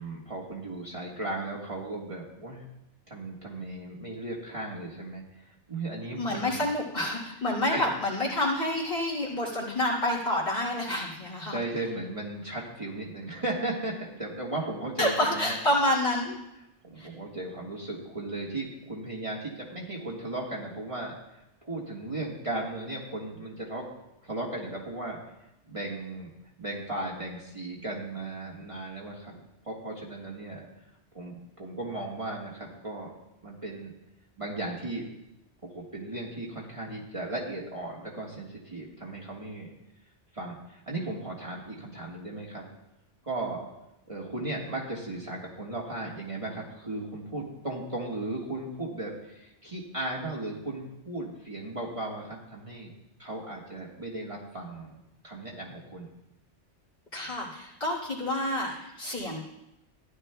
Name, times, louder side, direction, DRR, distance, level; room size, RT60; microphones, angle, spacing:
voice 1, 0.0-2.6 3.1-6.6 7.7-7.9 11.5-15.6 16.8-23.9 24.2-25.2 25.6-26.3 26.6-29.4 29.6-30.7 31.1-33.1 33.4-33.9 34.4-35.1 35.6-39.7 40.3-42.6 43.2-43.7 44.1-52.9 53.2-55.0 55.2-56.1, right 2 dB, 25° right, -4 dB, 1.5 m, -36 dB
voice 2, 6.2-11.6 15.0-16.4 17.0-17.1 57.1-59.4, left 1 dB, 50° left, -3 dB, 2.9 m, -28 dB
15.0 x 11.0 x 2.2 m, 0.90 s
omnidirectional pair, 1.2 m